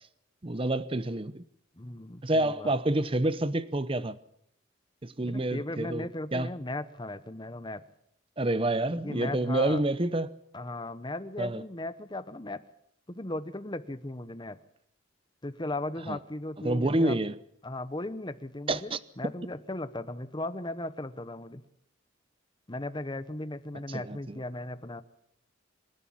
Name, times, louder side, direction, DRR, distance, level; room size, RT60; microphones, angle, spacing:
voice 1, 0.4-1.4 2.2-4.2 5.0-6.1 6.3-6.5 8.4-10.3 11.4-11.6 16.1-16.2 16.6-17.3 18.7-19.0 23.9-24.4, right 1 dB, 30° right, 0.8 m, -28 dB
voice 2, 1.8-3.0 5.2-7.8 9.0-9.8 10.5-12.6 13.1-14.6 15.4-17.2 17.6-21.6 22.7-25.0, left 2 dB, 25° left, 0.9 m, -37 dB
26.0 x 11.5 x 8.7 m
head